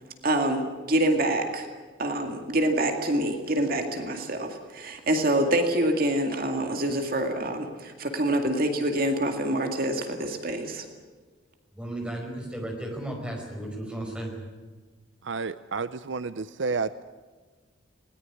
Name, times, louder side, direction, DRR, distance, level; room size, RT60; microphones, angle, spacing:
voice 1, 0.2-1.7 2.0-10.9, right 1 dB, 45° right, 5 dB, 2.2 m, -26 dB
voice 2, 11.7-14.4, right 1 dB, 5° right, 1 dB, 5.0 m, -34 dB
voice 3, 15.2-17.0, right 4 dB, 65° right, 14 dB, 0.6 m, -31 dB
21.0 x 19.0 x 9.9 m, 1.4 s
head